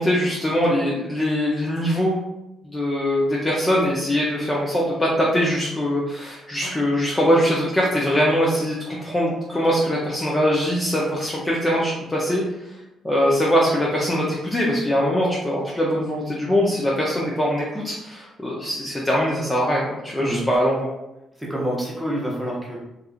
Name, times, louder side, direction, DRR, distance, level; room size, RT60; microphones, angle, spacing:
voice 1, 0.0-2.2 2.6-12.4 12.7-12.8 13.0-20.9, equal, 15° left, -5 dB, 0.5 m, -22 dB
voice 2, 21.4-22.8, equal, 5° right, -4 dB, 0.9 m, -27 dB
2.8 x 2.5 x 2.4 m, 0.92 s
cardioid pair, 90°, 0 cm